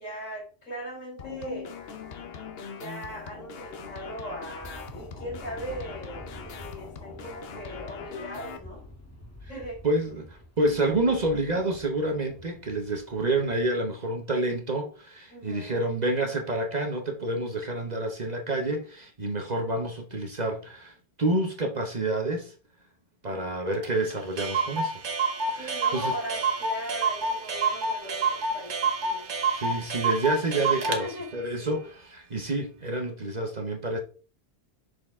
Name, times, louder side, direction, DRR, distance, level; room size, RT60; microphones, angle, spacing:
voice 1, 0.0-1.8 2.4-8.8 9.5-9.8 15.3-15.8 25.5-29.3 30.8-31.9, right 1 dB, 80° left, 4.2 m, -39 dB
sound 1, 1.2-8.6, left 6 dB, 55° left, 0.9 m, -41 dB
sound 2, 4.4-13.6, left 1 dB, 10° left, 1.4 m, -48 dB
voice 2, 9.8-22.5 23.2-24.9 25.5-26.1 29.5-31.1 31.3-34.0, right 2 dB, 35° right, 1.0 m, -28 dB
Clock, 23.8-23.9 24.1-24.2 24.4-31.0, right 4 dB, 65° right, 1.3 m, -28 dB
6.4 x 4.7 x 3.6 m
omnidirectional pair, 1.3 m